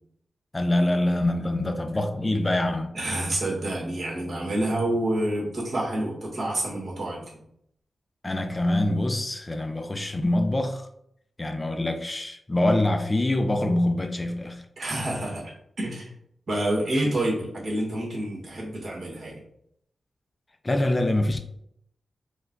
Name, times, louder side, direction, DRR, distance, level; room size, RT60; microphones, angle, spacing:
voice 1, 0.5-2.9 8.2-10.9 11.4-14.6 20.6-21.4, left 1 dB, 25° left, 0.5 m, -25 dB
voice 2, 2.9-7.4 14.8-16.1 16.5-19.4, right 1 dB, 60° right, 1.7 m, -28 dB
4.5 x 2.3 x 3.9 m
cardioid pair, 70°, 0 cm